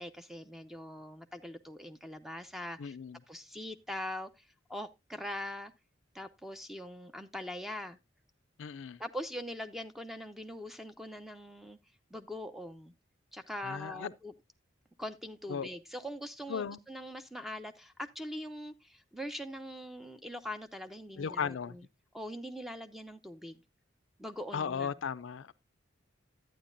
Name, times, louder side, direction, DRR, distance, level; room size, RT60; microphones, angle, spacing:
voice 1, 0.0-3.0 3.3-5.7 6.1-8.0 9.0-11.8 12.1-12.9 13.3-14.3 15.0-21.9 22.1-23.6 24.2-24.9, left 1 dB, ahead, 0.6 m, -42 dB
voice 2, 2.8-3.2 8.6-9.0 13.6-14.1 15.5-15.7 16.5-16.8 21.2-21.8 24.5-25.5, left 6 dB, 80° left, 0.4 m, -36 dB
11.5 x 9.1 x 2.5 m
head